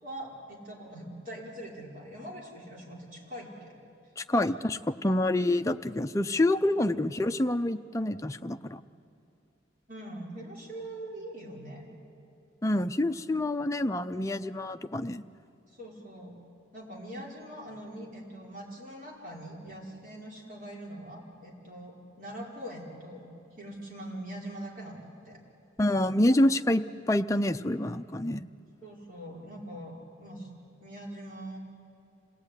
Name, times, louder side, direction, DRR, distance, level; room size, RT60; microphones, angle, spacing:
voice 1, 0.0-3.8 4.3-4.5 6.7-6.8 9.9-11.9 15.7-16.4 16.7-23.3 23.6-25.4 28.8-30.5 30.8-31.6, right 1 dB, 45° right, -3 dB, 4.8 m, -43 dB
voice 2, 4.2-8.8 12.6-15.2 25.8-28.5, left 1 dB, 15° left, 7 dB, 0.5 m, -27 dB
26.5 x 18.0 x 9.8 m, 2.5 s
head